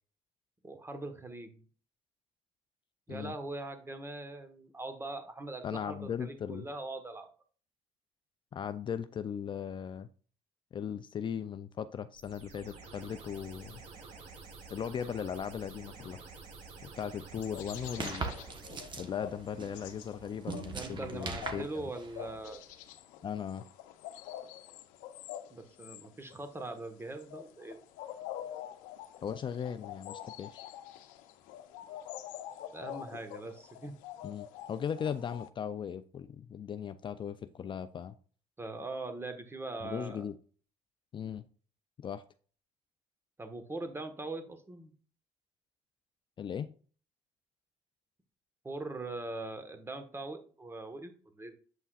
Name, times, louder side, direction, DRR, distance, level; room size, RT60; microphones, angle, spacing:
voice 1, 0.6-1.6 3.1-7.3 20.6-22.6 25.5-27.8 32.7-33.9 38.6-40.3 43.4-44.9 48.6-51.6, right 2 dB, 20° right, 8 dB, 1.4 m, -41 dB
voice 2, 5.6-6.7 8.5-10.1 10.7-13.8 14.7-16.2 16.8-18.3 19.0-21.8 23.2-23.6 29.2-30.7 34.2-38.1 39.8-40.3 41.1-41.4 42.0-42.2 46.4-46.7, left 8 dB, 40° left, 11 dB, 0.5 m, -38 dB
sound 1, 12.2-19.0, right 4 dB, 60° right, 2.3 m, -50 dB
sound 2, 17.4-35.5, left 11 dB, 80° left, 0.7 m, -46 dB
sound 3, 17.7-22.7, right 4 dB, 35° right, 1.2 m, -42 dB
8.2 x 5.6 x 2.4 m, 0.41 s
supercardioid pair, 85°, 13 cm